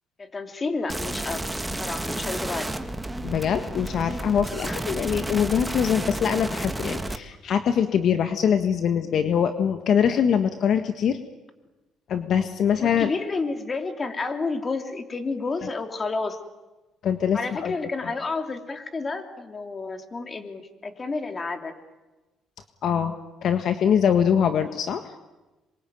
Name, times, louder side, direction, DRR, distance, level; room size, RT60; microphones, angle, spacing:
voice 1, 0.2-1.4 1.8-2.7 4.5-4.8 12.7-16.4 17.3-21.7, left 3 dB, 30° left, 6 dB, 3.0 m, -30 dB
sound 1, 0.9-7.2, right 1 dB, 10° right, 1.7 m, -31 dB
voice 2, 3.2-11.2 12.1-13.1 17.0-17.7 22.8-23.1 23.4-25.1, left 8 dB, 60° left, 8 dB, 1.6 m, -23 dB
27.0 x 23.0 x 9.3 m, 1.1 s
cardioid pair, 100°, 0 cm